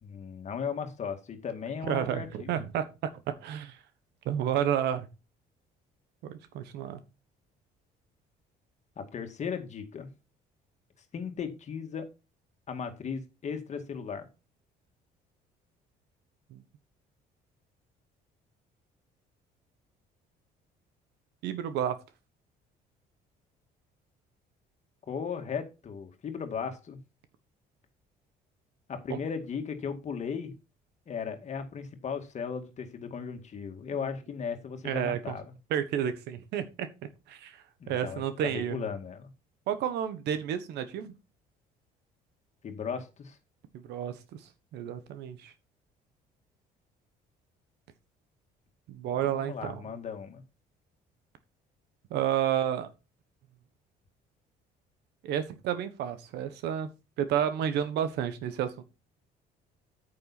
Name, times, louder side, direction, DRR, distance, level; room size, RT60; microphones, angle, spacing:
voice 1, 0.0-2.6 9.0-10.1 11.1-12.1 12.7-14.3 25.1-27.0 28.9-30.5 31.1-35.4 37.8-39.3 42.6-43.4 49.2-50.4, left 6 dB, 45° left, 2.1 m, -36 dB
voice 2, 1.8-3.8 4.2-5.1 6.2-7.0 16.5-16.6 21.4-22.0 29.1-29.2 33.9-34.1 34.8-35.3 35.7-36.9 37.3-38.9 39.7-41.1 43.7-44.2 44.7-45.5 48.9-49.8 52.1-52.9 55.2-56.9 57.2-58.8, right 9 dB, 80° right, 1.4 m, -31 dB
9.1 x 6.6 x 4.2 m
cardioid pair, 110°, 17 cm